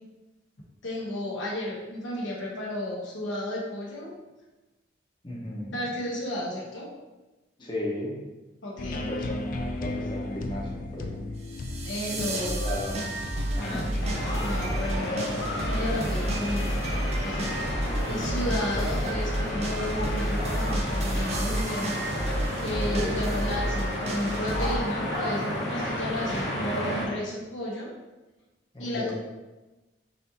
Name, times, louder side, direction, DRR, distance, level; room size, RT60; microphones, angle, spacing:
voice 1, 0.8-4.1 5.7-6.9 8.6-9.0 11.8-12.6 13.6-13.8 14.4-15.3 15.6-16.8 17.2-22.0 22.6-27.9 28.8-29.1, left 1 dB, 90° left, -4 dB, 1.1 m, -33 dB
voice 2, 5.2-5.8 7.6-8.2 8.9-11.2 12.1-13.0 13.6-13.9 17.8-18.9 22.7-23.2 28.7-29.1, left 1 dB, 25° left, -3 dB, 0.8 m, -35 dB
sound 1, 8.8-20.6, left 2 dB, 45° left, 0.3 m, -38 dB
sound 2, 11.4-24.8, right 1 dB, 35° right, 0.5 m, -30 dB
sound 3, 14.0-27.1, left 1 dB, 70° left, 1.0 m, -32 dB
5.5 x 2.6 x 2.8 m, 1.1 s
head